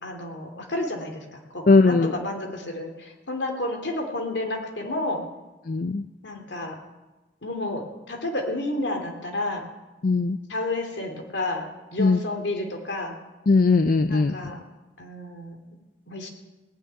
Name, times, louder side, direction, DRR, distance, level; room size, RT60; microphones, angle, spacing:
voice 1, 0.0-5.2 6.2-6.8 7.4-9.7 10.5-11.7 11.9-13.2 14.1-14.6 15.0-15.6 16.1-16.3, left 2 dB, 70° left, 3 dB, 2.7 m, -31 dB
voice 2, 1.7-2.1 5.7-6.0 10.0-10.4 12.0-12.2 13.5-14.3, left 3 dB, 50° left, 10 dB, 0.5 m, -19 dB
19.0 x 6.4 x 9.3 m, 1.1 s
head